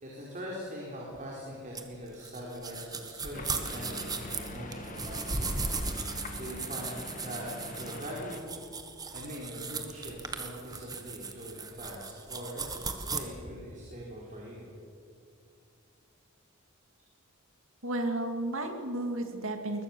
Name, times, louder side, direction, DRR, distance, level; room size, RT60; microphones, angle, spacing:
voice 1, 0.0-5.5 5.9-8.7 9.1-14.7, equal, 40° right, -3 dB, 4.1 m, -42 dB
sound 1, 1.7-13.2, right 4 dB, 20° right, 1.7 m, -37 dB
sound 2, 3.3-8.4, left 2 dB, 40° left, 2.1 m, -43 dB
voice 2, 17.8-19.8, right 1 dB, 65° right, 5 dB, 2.7 m, -33 dB
21.0 x 21.0 x 7.2 m, 2.4 s
head